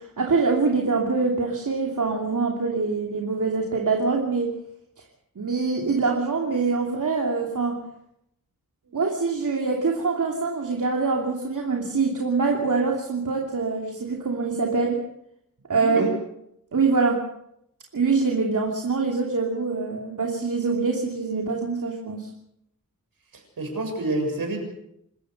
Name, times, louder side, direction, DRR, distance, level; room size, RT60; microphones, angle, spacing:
voice 1, 0.0-4.5 5.4-7.8 8.9-15.0 15.7-16.1 16.7-17.2 17.9-22.3, right 4 dB, 60° right, 0 dB, 2.9 m, -24 dB
voice 2, 15.7-16.1 23.3-24.6, right 2 dB, 80° right, 3 dB, 7.1 m, -28 dB
27.0 x 15.0 x 6.7 m, 0.76 s
wide cardioid pair, 90°, 34 cm